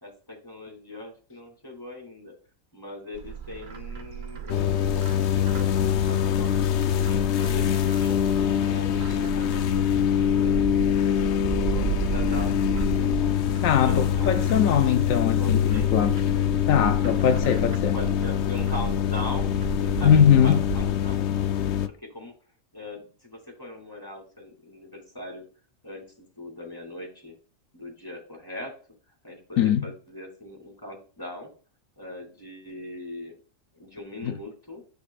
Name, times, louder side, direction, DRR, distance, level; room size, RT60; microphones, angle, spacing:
voice 1, 0.0-2.3 2.7-8.2 8.5-9.9 10.3-10.7 11.2-12.6 12.8-13.1 13.6-15.0 15.2-15.9 17.9-22.3 22.7-25.4 25.8-27.4 27.7-28.7 29.2-31.5 32.0-33.4 33.7-34.8, left 2 dB, 15° left, 2.7 m, -40 dB
Bird, 3.1-20.9, right 6 dB, 45° right, 0.7 m, -34 dB
sound 1, 4.5-21.9, left 10 dB, 65° left, 0.8 m, -24 dB
voice 2, 13.6-16.2 16.7-18.0 20.0-20.6 29.6-29.9 34.2-34.3, left 8 dB, 90° left, 1.1 m, -21 dB
12.5 x 6.6 x 2.4 m
omnidirectional pair, 1.4 m